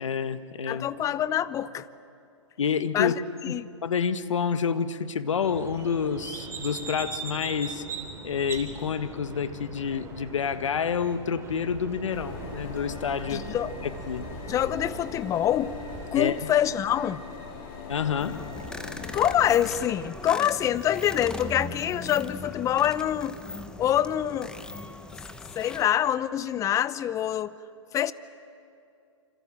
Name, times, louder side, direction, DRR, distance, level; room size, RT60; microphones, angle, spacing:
voice 1, 0.0-0.9 2.6-3.1 3.5-7.8 8.2-13.5 13.8-14.3 16.1-16.3 17.9-18.4, left 6 dB, 75° left, 12 dB, 1.5 m, -28 dB
voice 2, 0.7-1.9 2.9-3.1 3.4-3.7 13.3-13.7 14.5-15.7 16.1-17.2 19.1-23.4 23.8-24.5 25.6-27.5 27.9-28.1, left 11 dB, 20° left, 17 dB, 0.7 m, -25 dB
sound 1, 5.4-16.1, right 4 dB, 15° right, 3.5 m, -41 dB
sound 2, 12.1-19.9, left 4 dB, 45° left, 4.7 m, -40 dB
sound 3, 18.2-25.8, left 1 dB, 5° left, 1.4 m, -39 dB
28.0 x 26.0 x 7.6 m, 2.5 s
hypercardioid pair, 125°, 16 cm